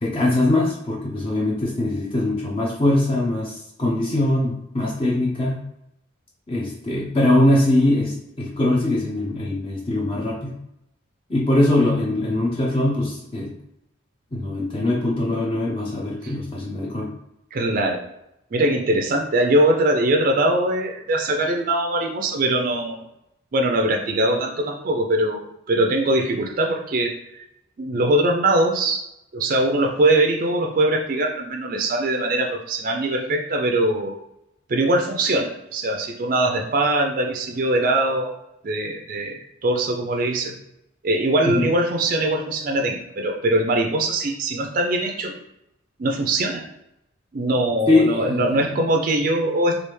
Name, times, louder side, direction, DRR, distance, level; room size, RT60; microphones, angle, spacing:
voice 1, 0.0-5.6 6.5-10.5 11.3-13.5 14.3-17.1 41.4-41.7 47.9-48.7, left 1 dB, 25° left, -3 dB, 0.5 m, -22 dB
voice 2, 17.5-18.0 18.5-23.0 23.5-27.5 27.8-29.0 29.3-34.2 34.7-38.3 38.6-40.6 41.0-45.3 46.0-46.7 47.3-49.8, right 1 dB, 45° right, 2 dB, 0.4 m, -22 dB
3.3 x 2.4 x 3.1 m, 0.82 s
head